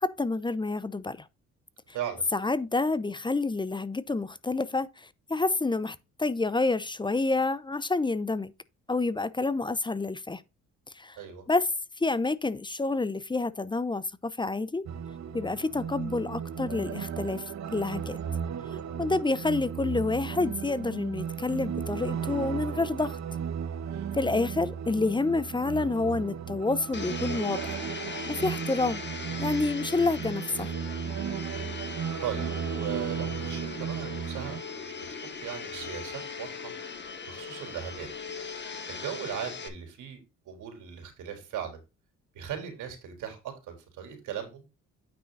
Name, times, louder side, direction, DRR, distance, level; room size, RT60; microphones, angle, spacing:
voice 1, 0.0-1.3 2.3-8.5 8.9-10.4 10.9-11.2 11.5-11.7 12.0-14.9 15.3-17.4 17.7-18.2 19.0-23.2 24.1-27.8 28.3-29.0 29.4-30.7, left 3 dB, 15° left, 0.7 m, -28 dB
voice 2, 1.9-2.2 11.2-11.4 23.9-24.1 32.2-35.0 35.4-36.7 37.3-38.1 38.9-40.2 40.5-41.8 42.3-43.4 43.7-44.6, right 9 dB, 85° right, 3.6 m, -38 dB
sound 1, 14.9-34.6, right 7 dB, 65° right, 1.2 m, -35 dB
Domestic sounds home sounds, 26.9-39.7, left 5 dB, 35° left, 1.8 m, -39 dB
9.2 x 5.2 x 3.9 m
cardioid pair, 90°, 30 cm